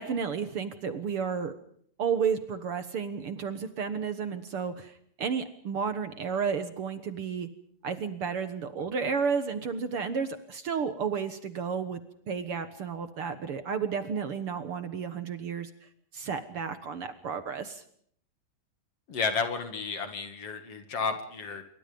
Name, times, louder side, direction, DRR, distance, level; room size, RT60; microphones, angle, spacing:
voice 1, 0.0-1.5 2.0-7.5 7.8-12.0 12.3-15.7 16.1-17.8, right 6 dB, 55° right, 10 dB, 1.9 m, -32 dB
voice 2, 19.1-21.6, left 5 dB, 55° left, 7 dB, 3.1 m, -32 dB
27.0 x 23.5 x 5.3 m, 0.65 s
omnidirectional pair, 3.3 m